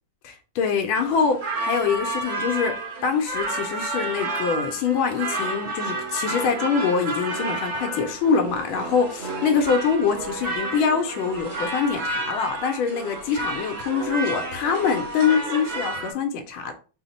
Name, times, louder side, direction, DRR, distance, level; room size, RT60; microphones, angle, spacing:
voice 1, 0.2-16.7, left 6 dB, 80° left, 1.4 m, -24 dB
sound 1, 0.9-16.1, right 2 dB, 60° right, 2.0 m, -31 dB
4.1 x 2.1 x 4.0 m
omnidirectional pair, 2.3 m